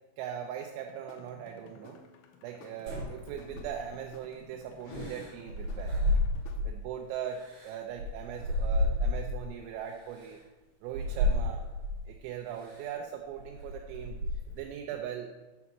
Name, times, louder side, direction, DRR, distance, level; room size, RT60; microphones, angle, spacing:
voice 1, 0.2-2.0 2.4-6.0 6.7-10.4 10.8-11.6 12.1-14.2 14.5-15.3, right 9 dB, 85° right, 3 dB, 3.3 m, -40 dB
sound 1, 0.9-6.6, left 5 dB, 85° left, 2.7 m, -55 dB
sound 2, 2.9-4.0 4.9-6.8 7.3-9.5 10.1-10.3 10.9-12.0 12.6-12.9 13.3-14.7, left 1 dB, 50° right, 3.8 m, -31 dB
sound 3, 4.8-6.1, equal, 45° left, 2.8 m, -45 dB
8.3 x 4.2 x 5.9 m, 1.2 s
omnidirectional pair, 6.0 m